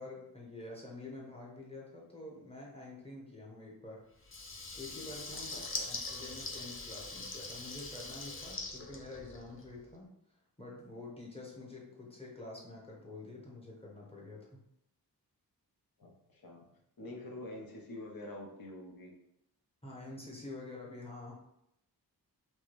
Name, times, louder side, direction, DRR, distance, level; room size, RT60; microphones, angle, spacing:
voice 1, 0.0-4.0 4.7-5.5 5.9-10.1 10.6-14.7 19.8-21.3, left 2 dB, 15° left, -3 dB, 1.1 m, -47 dB
Water tap faucet / Liquid, 4.2-9.7, left 3 dB, 30° left, 0.6 m, -42 dB
voice 2, 5.5-5.9 16.0-16.6 17.0-19.1, left 1 dB, 60° left, 0 dB, 1.0 m, -46 dB
4.6 x 2.2 x 3.0 m, 0.80 s
wide cardioid pair, 80°, 40 cm